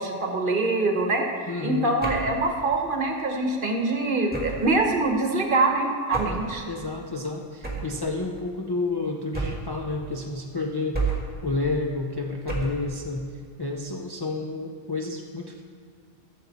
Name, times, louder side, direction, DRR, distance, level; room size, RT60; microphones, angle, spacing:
voice 1, 0.0-6.6, right 2 dB, 45° right, 3 dB, 1.1 m, -24 dB
voice 2, 1.5-1.9 6.7-11.2 11.4-13.3 13.6-15.6, left 3 dB, 30° left, 0 dB, 0.5 m, -30 dB
sound 1, 2.0-2.4 4.3-4.8 6.1-6.5 7.6-8.0 9.3-9.8 10.9-11.4 12.5-12.9, right 3 dB, 10° right, 1.7 m, -30 dB
14.5 x 7.0 x 4.1 m, 2.1 s
omnidirectional pair, 1.3 m